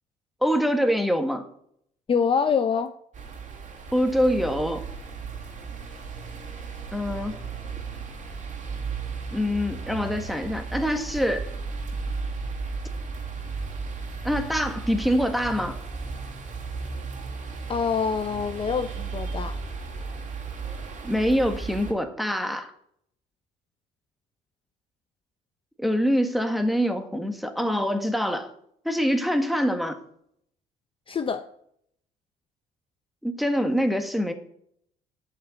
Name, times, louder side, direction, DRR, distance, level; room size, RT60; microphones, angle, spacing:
voice 1, 0.4-1.5 3.9-4.9 6.9-7.4 9.3-11.5 14.2-15.8 21.0-22.7 25.8-28.5 28.8-30.0 33.2-34.3, equal, ahead, 1.5 m, -25 dB
voice 2, 2.1-2.9 17.7-19.6 31.1-31.5, left 6 dB, 30° left, 0.7 m, -25 dB
sound 1, 3.1-21.9, right 4 dB, 45° right, 2.6 m, -35 dB
11.5 x 5.8 x 8.7 m
cardioid pair, 110°, 17 cm